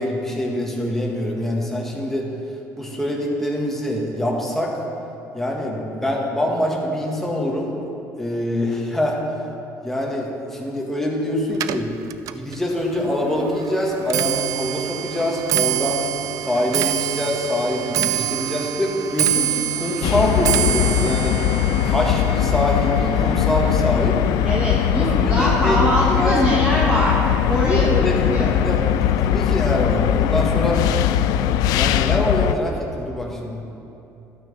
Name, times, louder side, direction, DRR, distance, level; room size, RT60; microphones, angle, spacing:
voice 1, 0.0-2.3 2.8-4.7 5.3-7.7 8.2-9.2 9.8-11.9 12.3-16.0 16.4-21.4 21.8-24.2 25.0-25.8 26.1-26.4 27.5-28.8 29.1-30.8 31.7-33.6, left 1 dB, 5° left, -2 dB, 1.6 m, -24 dB
Clock, 11.5-24.9 25.2-25.7 26.5-26.6 26.9-27.3 27.5-27.6, right 12 dB, 65° right, 0.4 m, -26 dB
sound 1, 20.0-32.5, left 11 dB, 80° left, 0.3 m, -20 dB
voice 2, 24.4-27.2 27.5-28.5, equal, 15° right, -4 dB, 1.2 m, -22 dB
12.0 x 8.8 x 3.4 m, 2.9 s
cardioid pair, 105°, 7 cm